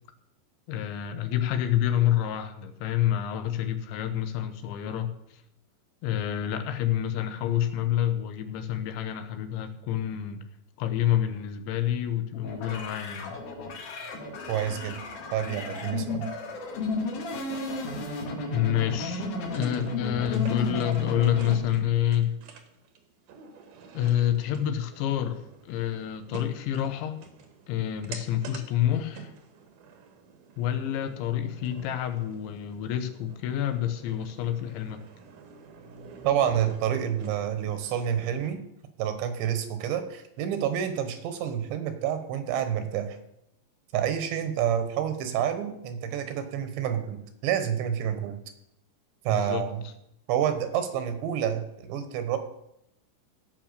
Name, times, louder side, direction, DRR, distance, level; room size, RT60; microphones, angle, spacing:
voice 1, 0.7-5.1 6.0-10.4 10.8-13.4 18.5-19.3 19.5-22.4 23.9-27.2 27.7-29.3 30.6-35.0 49.3-49.6, left 11 dB, 80° left, 9 dB, 3.3 m, -28 dB
sound 1, 12.3-21.6, left 3 dB, 55° left, 2.9 m, -33 dB
voice 2, 14.5-15.0 15.3-16.3 36.2-38.6 39.0-43.2 43.9-48.4 49.2-49.8 50.3-52.4, right 9 dB, 80° right, 9 dB, 3.4 m, -28 dB
sound 2, 19.1-38.5, right 5 dB, 65° right, 2.3 m, -48 dB
16.5 x 5.9 x 6.7 m, 0.78 s
omnidirectional pair, 5.3 m